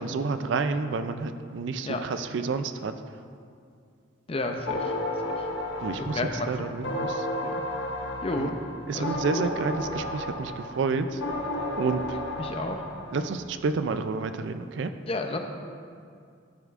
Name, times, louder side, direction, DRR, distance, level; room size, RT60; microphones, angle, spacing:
voice 1, 0.0-2.9 5.8-7.3 8.3-8.5 8.9-11.2 11.8-12.0 13.1-14.9, right 4 dB, 60° right, 10 dB, 0.4 m, -29 dB
voice 2, 4.3-4.9 5.3-5.4 6.0-6.5 7.4-7.5 8.2-8.6 8.9-9.4 12.4-12.8 15.1-15.4, left 2 dB, 30° left, 4 dB, 0.5 m, -31 dB
sound 1, 4.7-13.4, left 1 dB, 60° left, 0.8 m, -33 dB
11.5 x 7.1 x 2.5 m, 2.3 s
head